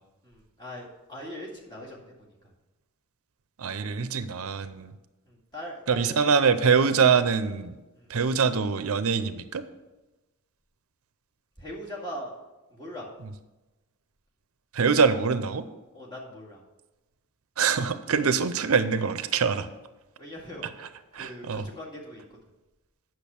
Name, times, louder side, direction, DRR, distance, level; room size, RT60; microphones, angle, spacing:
voice 1, 0.2-2.5 5.2-6.2 7.9-8.1 11.6-12.3 12.7-13.1 15.9-16.6 20.2-20.7 21.1-22.4, equal, 20° left, -4 dB, 2.2 m, -41 dB
voice 2, 3.6-4.9 5.9-7.7 8.1-9.6 14.7-15.6 17.6-19.7 21.1-21.7, right 5 dB, 75° right, 12 dB, 0.6 m, -24 dB
8.3 x 6.3 x 7.0 m, 1.1 s
head